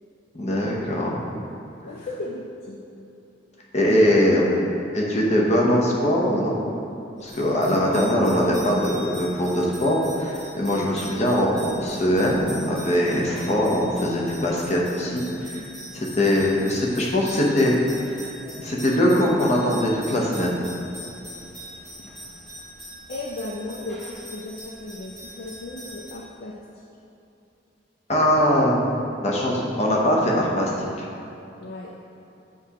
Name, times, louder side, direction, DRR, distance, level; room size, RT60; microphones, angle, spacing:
voice 1, 0.3-1.2 3.7-4.5 4.9-6.6 7.2-15.6 15.9-17.8 18.2-18.3 18.6-20.6 28.1-28.8 29.2-31.1, equal, 35° left, -3 dB, 0.8 m, -21 dB
voice 2, 1.8-2.8 23.1-26.5 31.6-31.9, left 2 dB, 55° left, -3 dB, 0.4 m, -35 dB
sound 1, 7.2-26.1, equal, 5° left, 1.0 m, -41 dB
7.8 x 2.9 x 4.8 m, 2.8 s
head